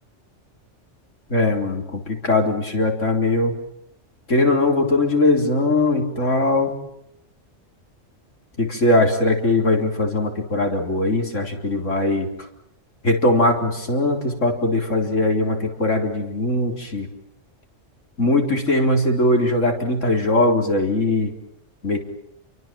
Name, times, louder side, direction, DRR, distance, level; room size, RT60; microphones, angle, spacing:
voice 1, 1.3-3.5 4.3-6.7 8.6-12.3 13.0-17.1 18.2-21.3 21.8-22.0, left 2 dB, 85° left, 3 dB, 4.4 m, -20 dB
30.0 x 23.5 x 7.6 m, 0.79 s
omnidirectional pair, 1.3 m